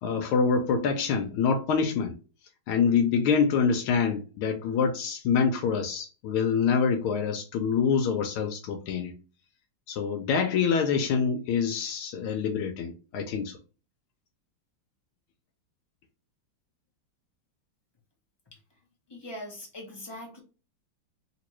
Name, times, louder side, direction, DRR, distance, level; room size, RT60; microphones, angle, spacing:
voice 1, 0.0-2.2 2.7-9.1 9.9-13.5, left 6 dB, 85° left, 1.5 m, -26 dB
voice 2, 19.1-20.4, left 1 dB, 30° left, 0.4 m, -41 dB
3.3 x 3.0 x 2.9 m
omnidirectional pair, 2.3 m